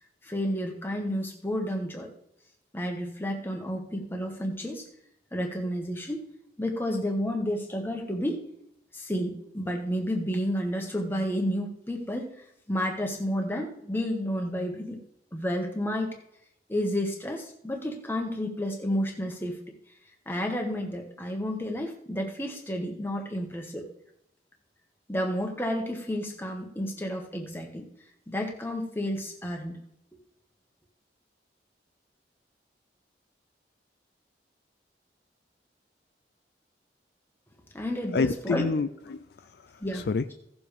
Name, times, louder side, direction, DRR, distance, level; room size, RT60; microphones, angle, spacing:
voice 1, 0.2-2.1 2.7-4.8 5.3-6.2 6.6-8.4 8.9-12.3 12.7-15.0 15.3-16.1 16.7-19.6 20.2-23.8 25.1-27.9 28.3-29.8 37.7-38.6 39.8-40.1, equal, 10° left, 1 dB, 1.4 m, -31 dB
voice 2, 38.1-40.3, left 4 dB, 65° left, 10 dB, 0.4 m, -29 dB
16.5 x 7.0 x 3.4 m, 0.78 s
head